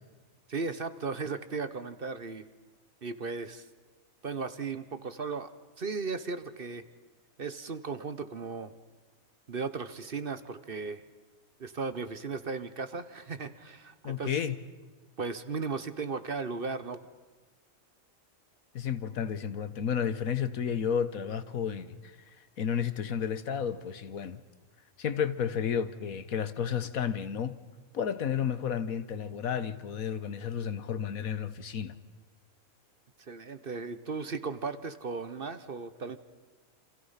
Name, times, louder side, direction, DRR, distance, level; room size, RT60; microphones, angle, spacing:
voice 1, 0.5-2.4 3.0-3.7 4.2-5.5 5.8-6.8 7.4-8.7 9.5-11.0 11.6-14.4 15.2-17.0 33.3-36.2, right 4 dB, 45° right, 1.1 m, -36 dB
voice 2, 14.0-14.6 18.7-22.2 22.6-24.4 25.0-27.6 27.9-31.9, left 8 dB, 80° left, 1.5 m, -32 dB
29.5 x 27.5 x 5.7 m
omnidirectional pair, 1.5 m